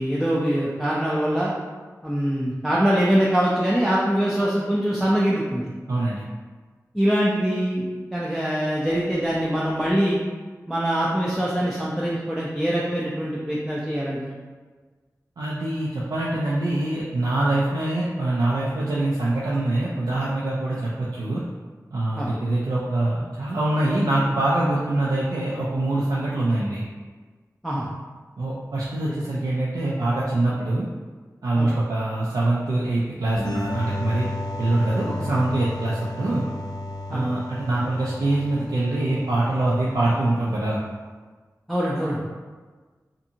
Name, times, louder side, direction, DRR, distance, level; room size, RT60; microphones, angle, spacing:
voice 1, 0.0-1.5 2.0-5.7 6.9-7.8 8.1-10.2 10.7-14.3 22.2-22.3 27.6-27.9 31.6-31.7 37.1-37.3 41.7-42.2, equal, ahead, -6 dB, 0.4 m, -23 dB
voice 2, 5.9-6.2 15.4-21.4 21.9-26.8 28.4-30.9 31.4-34.3 34.6-36.5 37.1-40.8, right 2 dB, 80° right, -6 dB, 0.4 m, -24 dB
sound 1, 33.3-40.8, left 1 dB, 70° left, 0.5 m, -34 dB
2.5 x 2.5 x 2.7 m, 1.4 s
wide cardioid pair, 80°, 6 cm